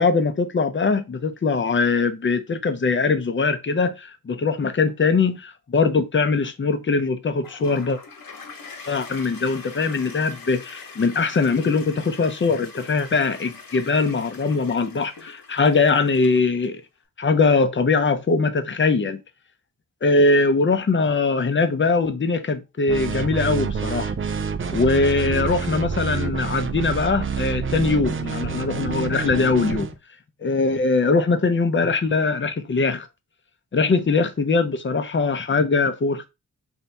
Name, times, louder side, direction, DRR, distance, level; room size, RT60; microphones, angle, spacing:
voice 1, 0.0-8.0 8.9-16.8 17.2-19.2 20.0-24.1 24.7-29.9 30.4-33.1 33.7-36.3, left 4 dB, 35° left, 0.6 m, -21 dB
Toilet flush, 7.4-16.7, left 4 dB, 75° left, 1.1 m, -42 dB
sound 1, 22.9-29.9, right 5 dB, 40° right, 0.4 m, -27 dB
4.1 x 2.7 x 3.4 m
wide cardioid pair, 120°, 35 cm